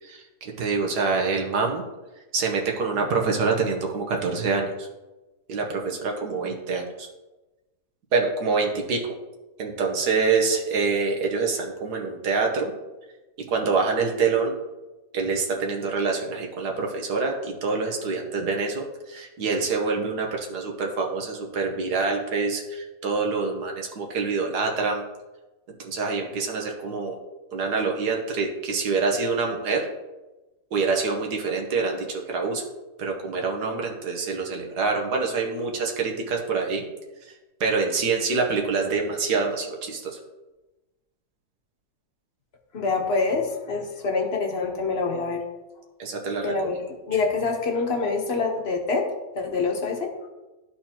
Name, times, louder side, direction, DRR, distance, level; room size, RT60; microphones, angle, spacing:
voice 1, 0.0-1.8 2.3-4.9 5.5-7.1 8.1-9.0 9.6-12.7 13.5-14.5 15.1-25.0 25.8-27.2 27.5-29.9 30.7-32.6 33.0-36.8 37.6-40.1 46.0-46.8, right 4 dB, 85° right, 1 dB, 1.6 m, -26 dB
voice 2, 42.7-45.4 46.4-49.1 49.3-50.1, left 4 dB, 45° left, 3 dB, 1.0 m, -26 dB
13.0 x 4.3 x 2.9 m, 1.1 s
omnidirectional pair, 1.7 m